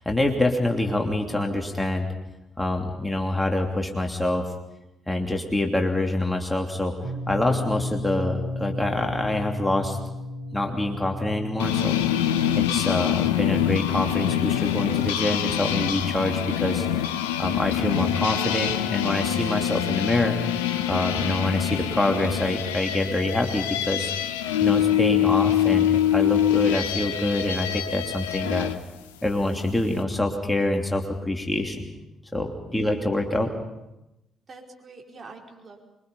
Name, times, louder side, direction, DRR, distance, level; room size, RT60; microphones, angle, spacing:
voice 1, 0.0-2.1 2.6-4.4 5.1-6.9 7.3-10.0 10.5-12.0 12.5-17.1 17.4-28.7 29.2-31.8 32.3-33.5, left 1 dB, 10° left, 2 dB, 3.0 m, -26 dB
sound 1, 7.0-17.2, left 2 dB, 80° right, 5.0 m, -36 dB
sound 2, 11.6-28.8, left 11 dB, 75° left, 0.8 m, -25 dB
voice 2, 32.7-33.1 34.5-35.8, right 3 dB, 40° right, 0 dB, 4.8 m, -45 dB
25.5 x 23.5 x 5.5 m, 0.93 s
figure-of-eight pair, 45°, 0 cm